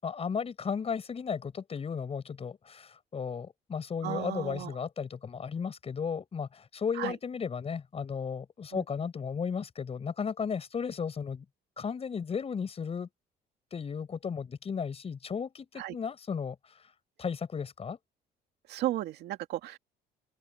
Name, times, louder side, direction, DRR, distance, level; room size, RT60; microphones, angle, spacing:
voice 1, 0.0-11.4 11.8-13.1 13.7-16.7 17.2-18.0, left 6 dB, 35° left, 5.9 m, -35 dB
voice 2, 4.0-4.7 6.9-7.2 8.7-8.8 15.8-15.9 18.7-19.8, right 14 dB, 75° right, 2.4 m, -34 dB
open air
cardioid pair, 110°, 17 cm